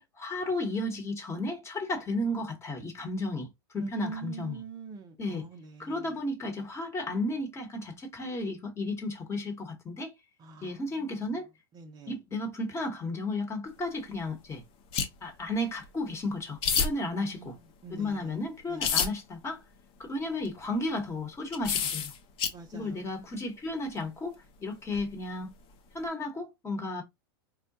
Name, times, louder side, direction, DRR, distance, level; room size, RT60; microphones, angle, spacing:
voice 1, 0.0-4.6 5.2-5.5 5.8-10.1 10.6-11.5 12.1-14.6 15.2-17.6 17.9-19.6 20.0-22.1 22.7-25.5 25.9-27.0, left 2 dB, 20° left, 1.0 m, -33 dB
voice 2, 3.8-6.1 10.4-11.2 11.7-12.1 17.0-17.5 17.8-18.3 18.7-19.0 22.5-23.0, right 5 dB, 30° right, 0.5 m, -44 dB
sound 1, 14.9-15.1 15.8-15.9 16.6-16.9 18.8-19.1 20.4-20.5 21.5-22.5 24.9-25.1, left 6 dB, 45° left, 0.7 m, -27 dB
3.7 x 2.1 x 2.6 m
hypercardioid pair, 100°, 13 cm